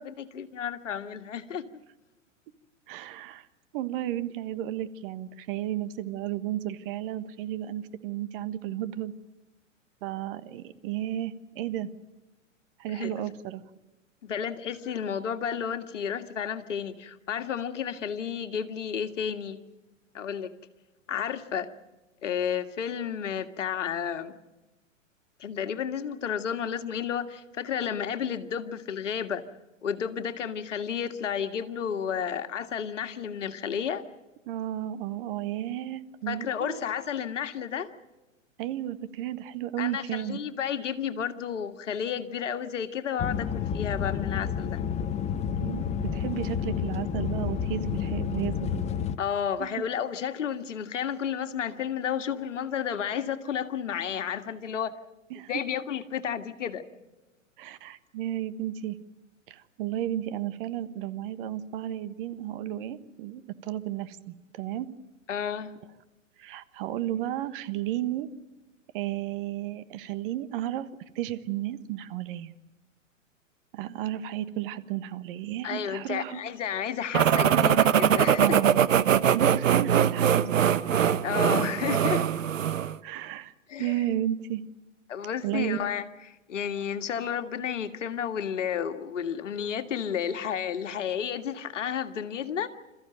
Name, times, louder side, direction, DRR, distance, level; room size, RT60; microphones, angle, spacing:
voice 1, 0.0-1.7 12.9-13.1 14.2-19.6 20.1-20.5 21.1-21.7 22.2-24.4 25.4-29.4 29.8-34.0 36.3-37.9 39.8-44.8 49.2-55.0 55.5-56.8 65.3-65.7 75.6-78.6 81.2-82.3 83.7-84.0 85.1-86.1 86.5-92.7, left 8 dB, 65° left, 9 dB, 1.9 m, -32 dB
voice 2, 2.9-3.5 3.7-9.1 10.0-11.9 12.8-13.6 34.5-36.8 38.6-40.4 45.6-48.8 49.6-49.7 55.3-55.5 57.6-59.0 59.5-64.9 66.4-68.3 68.9-70.9 71.1-72.5 73.7-76.4 77.5-77.6 78.4-80.8 83.0-83.5 83.8-84.6 85.4-85.8, right 12 dB, 45° right, 12 dB, 1.4 m, -33 dB
sound 1, 43.2-49.2, left 8 dB, 15° left, 0.9 m, -30 dB
sound 2, 77.1-83.0, right 8 dB, 75° right, 1.1 m, -22 dB
28.0 x 14.5 x 9.0 m, 1.1 s
figure-of-eight pair, 110°, 39 cm